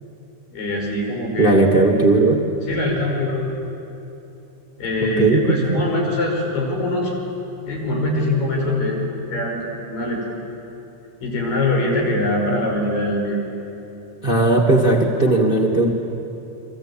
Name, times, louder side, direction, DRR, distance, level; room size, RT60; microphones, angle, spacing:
voice 1, 0.5-1.6 2.7-3.5 4.8-7.1 7.7-9.1 9.3-9.6 9.9-10.3 11.2-13.4, left 1 dB, 85° left, -1 dB, 7.3 m, -23 dB
voice 2, 1.4-2.4 5.0-5.8 14.2-15.9, right 2 dB, 25° right, 2 dB, 1.3 m, -17 dB
29.5 x 23.0 x 8.8 m, 3.0 s
omnidirectional pair, 3.8 m